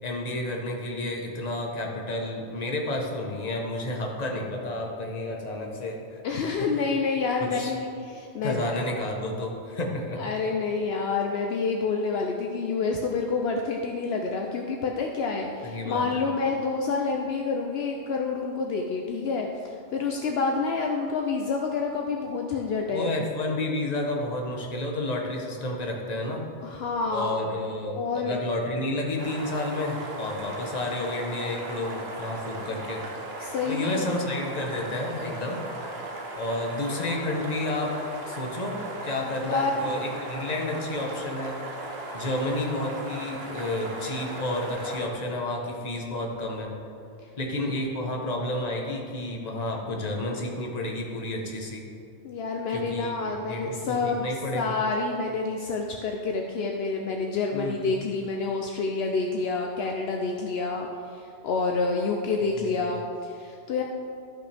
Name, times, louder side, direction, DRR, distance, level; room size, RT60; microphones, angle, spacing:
voice 1, 0.0-6.2 7.4-7.7 8.4-10.2 15.6-16.2 22.9-26.4 27.1-33.0 33.7-35.6 36.3-37.9 38.2-41.6 42.1-46.7 47.4-51.8 52.7-54.7 57.5-57.9 62.5-63.0, left 1 dB, 40° left, 0 dB, 1.1 m, -31 dB
voice 2, 6.2-8.6 10.2-23.1 26.6-27.3 27.9-28.4 33.4-34.1 39.5-39.7 52.2-54.3 54.5-63.8, left 4 dB, 70° left, 1 dB, 0.8 m, -28 dB
sound 1, 29.2-45.1, right 2 dB, 65° right, 1.3 m, -37 dB
13.0 x 5.9 x 3.4 m, 2.6 s
omnidirectional pair, 1.1 m